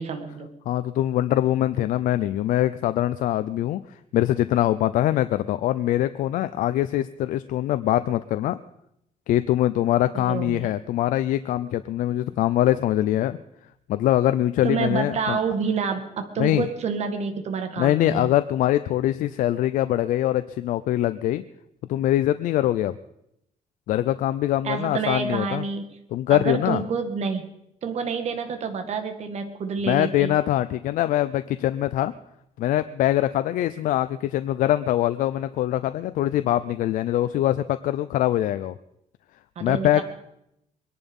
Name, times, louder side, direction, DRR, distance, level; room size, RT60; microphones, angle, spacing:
voice 1, 0.0-0.5 10.1-10.7 14.6-18.3 24.6-25.9 26.3-27.5 27.8-30.3 39.6-40.0, right 5 dB, 55° right, 6 dB, 2.0 m, -28 dB
voice 2, 0.7-8.6 9.3-13.4 13.9-15.4 16.4-16.7 17.8-21.4 21.9-23.0 23.9-25.7 26.1-26.8 29.9-32.1 32.6-38.8 39.6-40.0, left 13 dB, 90° left, 12 dB, 0.5 m, -23 dB
23.0 x 11.0 x 5.4 m, 0.79 s
cardioid pair, 125°, 13 cm